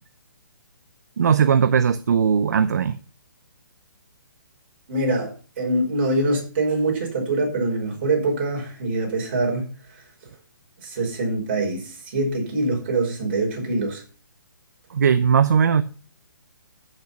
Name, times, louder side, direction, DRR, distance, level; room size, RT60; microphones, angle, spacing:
voice 1, 1.2-3.0 14.9-15.8, right 7 dB, 50° right, 0.7 m, -18 dB
voice 2, 4.9-9.7 10.8-14.0, right 2 dB, 30° right, 5.4 m, -24 dB
14.5 x 6.7 x 5.8 m
hypercardioid pair, 175°, 12 cm